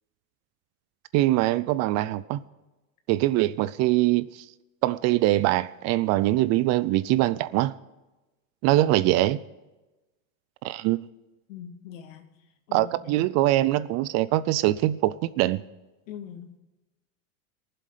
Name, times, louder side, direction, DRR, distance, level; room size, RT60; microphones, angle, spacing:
voice 1, 1.1-2.4 3.1-4.2 4.8-7.7 8.6-9.4 10.6-11.0 12.7-15.6, right 16 dB, 45° right, 0.5 m, -23 dB
voice 2, 11.5-12.3 12.7-13.1 16.1-16.6, left 9 dB, 75° left, 2.2 m, -42 dB
19.5 x 7.6 x 5.0 m
supercardioid pair, 120°, 40 cm